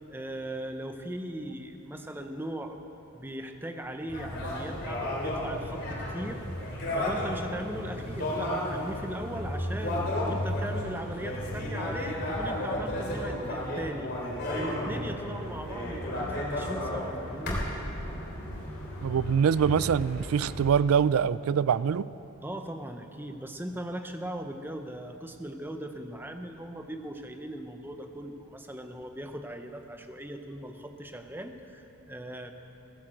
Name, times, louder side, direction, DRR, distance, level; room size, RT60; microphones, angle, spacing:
voice 1, 0.1-2.8 3.1-6.5 6.9-14.1 14.5-17.6 22.4-32.5, right 1 dB, 10° right, 6 dB, 0.7 m, -39 dB
sound 1, 4.1-20.6, left 1 dB, 45° left, 3.2 m, -33 dB
voice 2, 19.0-22.1, right 7 dB, 70° right, 18 dB, 0.3 m, -24 dB
16.0 x 10.5 x 7.7 m, 2.9 s
head